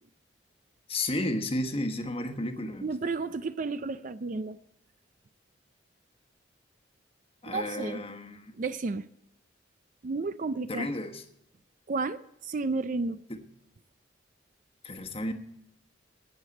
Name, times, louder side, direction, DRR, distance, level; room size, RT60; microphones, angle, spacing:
voice 1, 0.9-2.9 7.4-8.5 10.7-11.2 13.3-13.4 14.8-15.3, left 1 dB, 30° left, 5 dB, 1.2 m, -32 dB
voice 2, 2.8-4.6 7.5-8.0 8.6-9.1 10.0-10.9 11.9-13.2, right 3 dB, 45° right, 12 dB, 0.4 m, -32 dB
16.0 x 6.6 x 8.3 m, 0.78 s
head